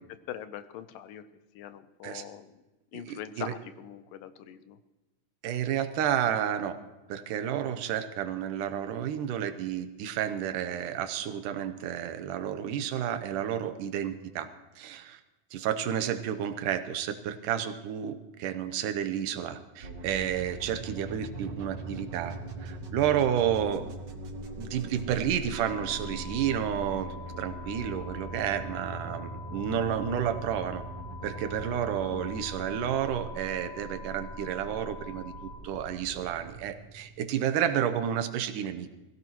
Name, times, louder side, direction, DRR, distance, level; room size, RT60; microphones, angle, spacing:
voice 1, 0.3-1.2 1.6-2.5 2.9-4.8 32.1-32.2, left 11 dB, 85° left, 12 dB, 2.5 m, -42 dB
voice 2, 2.9-3.5 5.4-6.8 7.1-14.5 14.8-15.2 15.5-24.0 24.6-30.8 31.2-39.0, right 9 dB, 80° right, 9 dB, 2.4 m, -31 dB
sound 1, 19.8-37.6, right 1 dB, 55° right, 1.2 m, -41 dB
sound 2, 25.5-35.5, left 5 dB, 55° left, 6.3 m, -47 dB
21.0 x 16.0 x 3.0 m, 1.1 s
omnidirectional pair, 3.8 m